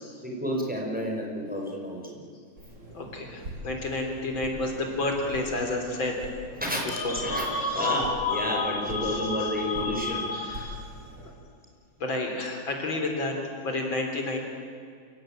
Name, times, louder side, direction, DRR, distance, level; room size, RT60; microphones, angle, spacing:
voice 1, 0.2-2.2 6.6-10.3, equal, 5° right, -1 dB, 5.3 m, -31 dB
sound 1, 2.6-11.3, equal, 60° right, 5.8 m, -43 dB
voice 2, 2.9-6.2 7.0-7.1 7.7-7.9 9.0-9.2 10.3-10.8 12.0-13.4 13.6-14.4, left 2 dB, 75° left, 2 dB, 4.4 m, -30 dB
sound 2, 6.8-11.0, left 3 dB, 45° left, 3.1 m, -31 dB
28.5 x 17.0 x 9.1 m, 2.3 s
omnidirectional pair, 2.1 m